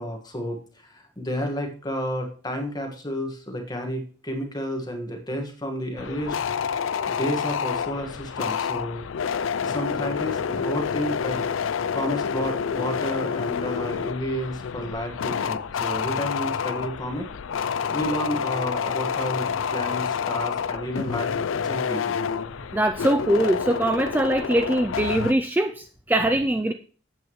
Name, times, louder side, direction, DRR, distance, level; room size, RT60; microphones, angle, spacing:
voice 1, 0.0-6.4 7.1-9.0 9.6-11.4 11.9-17.3 17.9-21.3 21.6-22.2, equal, 20° left, 3 dB, 1.6 m, -31 dB
sound 1, 6.0-25.3, left 6 dB, 90° left, 0.4 m, -28 dB
voice 2, 22.7-26.7, right 1 dB, 10° right, 7 dB, 0.3 m, -22 dB
12.0 x 8.3 x 3.1 m, 0.42 s
head